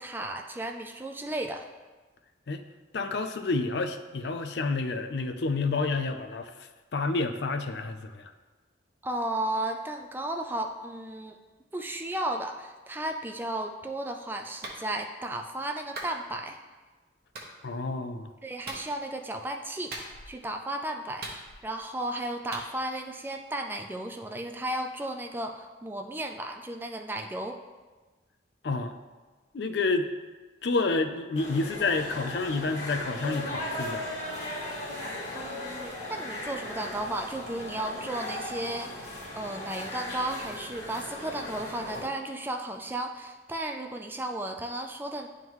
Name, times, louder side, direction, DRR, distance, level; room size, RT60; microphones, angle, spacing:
voice 1, 0.0-1.7 9.0-11.4 11.7-16.6 18.4-27.6 35.3-39.1 39.4-45.3, right 1 dB, 10° right, 4 dB, 0.3 m, -34 dB
voice 2, 2.9-8.3 17.6-18.3 28.6-28.9 29.5-30.1 30.6-34.1, left 3 dB, 65° left, 7 dB, 0.5 m, -29 dB
Clapping, 14.6-14.8 15.9-16.2 17.3-17.5 18.6-18.9 19.9-20.4 21.2-21.8 22.5-22.7, right 2 dB, 55° right, 1.0 m, -39 dB
sound 1, 31.3-42.0, left 1 dB, 40° left, 1.5 m, -37 dB
11.0 x 3.7 x 3.0 m, 1.3 s
head